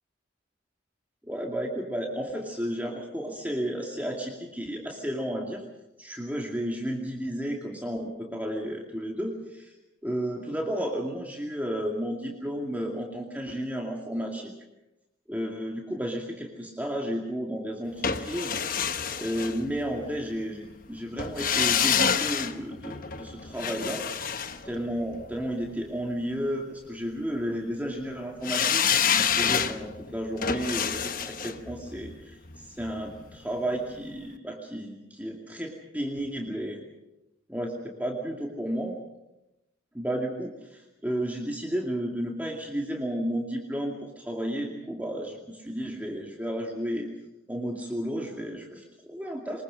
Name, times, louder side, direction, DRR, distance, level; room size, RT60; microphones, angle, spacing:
voice 1, 1.2-5.6 6.0-9.7 10.0-14.5 15.3-18.6 19.2-24.1 24.6-36.8 37.5-39.0 39.9-47.1 47.5-49.6, equal, 10° right, -1 dB, 2.4 m, -32 dB
sound 1, 18.0-20.1 21.2-25.4 28.4-33.4 33.7-33.8, left 7 dB, 45° left, 1.0 m, -28 dB
24.0 x 21.5 x 6.3 m, 0.94 s
head